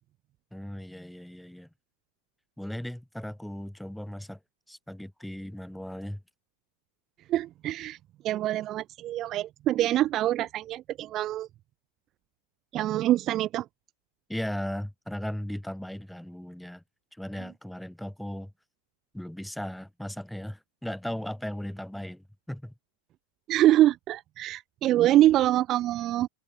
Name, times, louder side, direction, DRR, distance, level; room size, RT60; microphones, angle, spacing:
voice 1, 0.5-1.7 2.6-4.4 4.7-6.2 14.3-16.8 17.2-18.5 19.1-22.7, equal, ahead, 2.0 m, -37 dB
voice 2, 7.3-8.0 8.2-11.5 12.7-13.7 23.5-26.3, right 13 dB, 35° right, 0.6 m, -24 dB
figure-of-eight pair, 90°, 0 cm